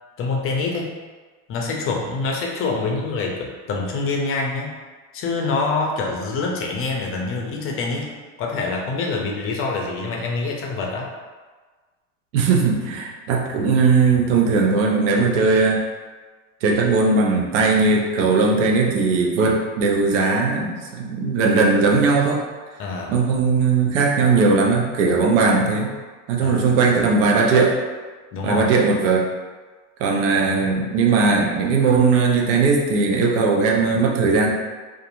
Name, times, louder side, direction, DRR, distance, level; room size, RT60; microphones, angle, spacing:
voice 1, 0.2-0.9 1.5-4.8 5.1-11.1 22.8-23.1 25.4-25.6 26.4-26.7 28.3-28.7 30.4-30.7, left 3 dB, 35° left, 0 dB, 0.5 m, -26 dB
voice 2, 12.3-15.8 16.6-22.4 23.1-25.9 26.3-27.8 28.4-29.2 30.0-34.5, right 4 dB, 75° right, -1 dB, 0.7 m, -18 dB
2.6 x 2.4 x 2.5 m, 1.4 s
hypercardioid pair, 95°, 38 cm